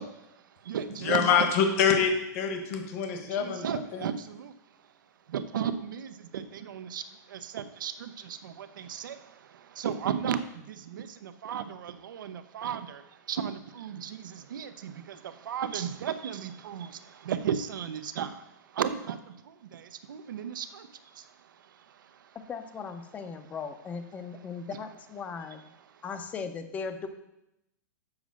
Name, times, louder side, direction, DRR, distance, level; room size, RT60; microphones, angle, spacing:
voice 1, 0.0-1.5 3.2-4.9 5.3-22.4 24.3-24.4 25.8-26.0, right 8 dB, 85° right, 11 dB, 0.6 m, -35 dB
voice 2, 1.0-3.7, left 7 dB, 45° left, 5 dB, 1.3 m, -25 dB
voice 3, 22.3-25.6 26.0-27.1, left 5 dB, 15° left, 8 dB, 0.5 m, -38 dB
7.2 x 5.0 x 6.3 m, 0.86 s
supercardioid pair, 160°, 10 cm